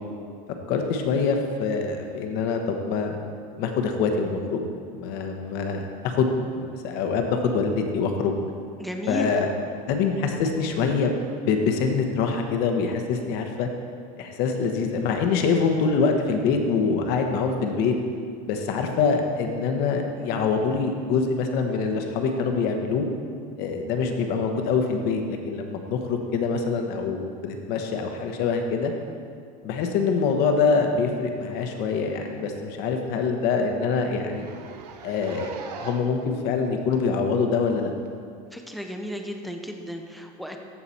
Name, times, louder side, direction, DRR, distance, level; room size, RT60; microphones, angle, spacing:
voice 1, 0.7-3.2 3.6-4.6 4.9-8.4 9.1-9.5 9.8-11.2 11.5-13.7 14.2-18.0 18.5-23.1 23.6-28.9 29.6-34.4 35.0-37.9, left 5 dB, 50° left, 4 dB, 1.2 m, -25 dB
voice 2, 8.8-9.3 38.5-40.6, equal, ahead, 3 dB, 0.6 m, -33 dB
Zipper (clothing), 31.6-31.8 32.1-32.2 32.6-32.7 33.1-33.2 33.4-33.6 34.2-36.2 36.9-37.0 38.0-38.1, right 6 dB, 90° right, 0.9 m, -41 dB
14.5 x 4.9 x 4.3 m, 2.3 s
supercardioid pair, 140°, 20 cm